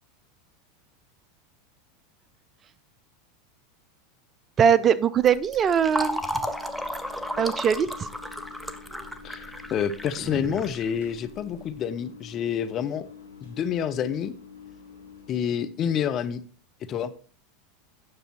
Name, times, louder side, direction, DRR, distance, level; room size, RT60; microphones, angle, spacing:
voice 1, 4.6-6.2 7.4-8.1, right 8 dB, 30° right, 0.5 m, -21 dB
Fill (with liquid), 5.2-11.6, equal, ahead, 1.0 m, -34 dB
sound 1, 5.8-15.3, left 6 dB, 75° left, 2.2 m, -47 dB
voice 2, 9.2-13.1 13.4-14.3 15.3-16.4 16.9-17.1, left 8 dB, 40° left, 0.8 m, -28 dB
9.7 x 6.7 x 4.5 m
hypercardioid pair, 90°, 0 cm